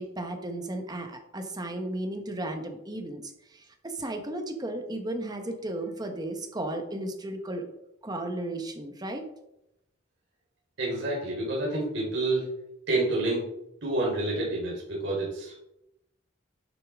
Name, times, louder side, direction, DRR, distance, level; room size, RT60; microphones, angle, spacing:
voice 1, 0.0-7.7 8.0-9.2, right 1 dB, 20° right, 4 dB, 1.2 m, -34 dB
voice 2, 10.8-12.5 12.9-13.4 13.8-15.5, right 2 dB, 65° right, -4 dB, 3.9 m, -28 dB
11.5 x 6.8 x 3.7 m, 0.85 s
head